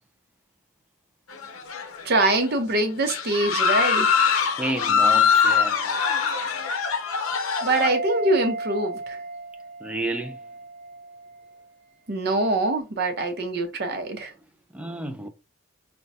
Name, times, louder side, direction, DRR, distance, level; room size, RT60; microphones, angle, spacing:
sound 1, 1.3-2.2 2.5-2.6 3.0-7.9, left 6 dB, 85° left, 0.6 m, -23 dB
voice 1, 2.0-4.2 7.6-9.2 12.1-14.3, right 2 dB, 50° right, 0.7 m, -24 dB
voice 2, 4.6-5.8 9.8-10.4 13.9-14.0 14.7-15.3, right 1 dB, 5° right, 0.4 m, -31 dB
sound 2, 7.7-11.6 11.9-12.0, right 2 dB, 50° left, 1.2 m, -34 dB
5.1 x 2.2 x 2.6 m
head